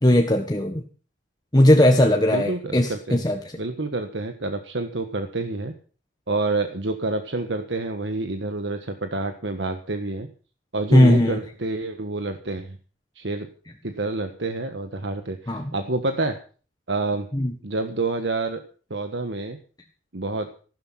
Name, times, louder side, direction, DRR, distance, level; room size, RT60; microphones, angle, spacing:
voice 1, 0.0-0.8 1.5-3.4 10.9-11.4 15.5-15.6 17.3-17.5, left 1 dB, 20° left, 3 dB, 1.5 m, -18 dB
voice 2, 2.3-3.2 3.6-5.7 6.3-10.3 10.7-12.8 13.1-13.5 13.8-16.4 16.9-17.3 17.6-18.6 18.9-19.6 20.1-20.5, right 2 dB, 70° right, 7 dB, 1.4 m, -28 dB
15.5 x 12.5 x 5.8 m, 0.39 s
head